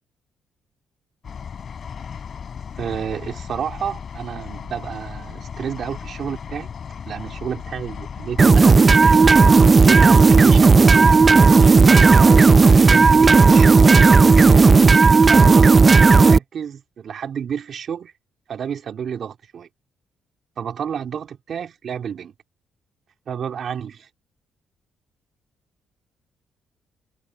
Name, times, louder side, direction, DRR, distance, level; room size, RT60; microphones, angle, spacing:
sound 1, 1.2-15.0, left 7 dB, 50° left, 5.7 m, -35 dB
voice 1, 2.8-6.7 7.0-9.2 9.8-14.6 15.3-18.1 18.5-19.7 20.6-22.3 23.3-24.1, right 8 dB, 60° right, 3.4 m, -30 dB
sound 2, 8.4-16.4, right 4 dB, 30° right, 0.6 m, -12 dB
cardioid pair, 90°, 0 cm